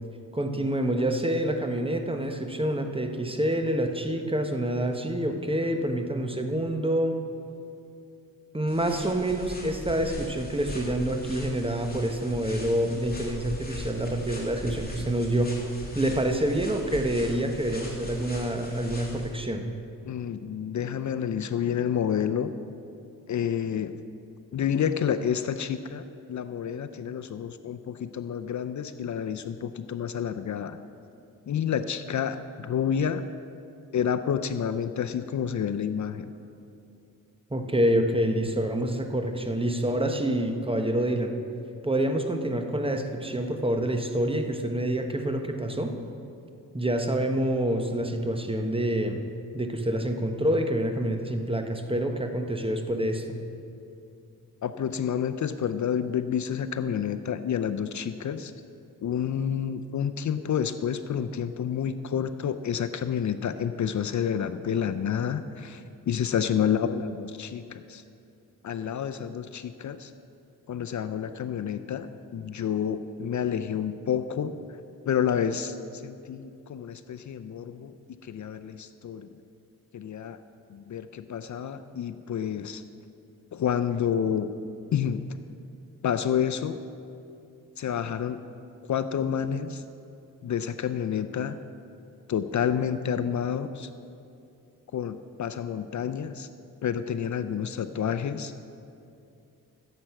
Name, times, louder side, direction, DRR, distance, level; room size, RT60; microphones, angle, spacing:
voice 1, 0.3-7.2 8.5-15.5 15.9-19.6 37.5-41.4 41.8-45.9 46.7-49.2 49.5-53.4, right 1 dB, 15° right, 5 dB, 1.2 m, -27 dB
sound 1, 8.7-19.3, left 2 dB, 25° left, 3.0 m, -40 dB
voice 2, 20.1-22.5 23.3-24.0 24.5-30.8 31.5-33.2 33.9-36.3 54.6-58.5 59.0-68.0 68.6-70.1 70.7-74.6 75.1-77.9 78.2-79.4 79.9-80.4 80.7-82.8 83.5-84.5 84.9-85.2 86.0-86.8 87.8-88.4 88.9-89.8 90.4-91.6 92.3-93.9 94.9-96.5 96.8-98.5, left 8 dB, 60° left, 11 dB, 0.6 m, -29 dB
14.5 x 7.7 x 5.8 m, 2.6 s
cardioid pair, 70°, 34 cm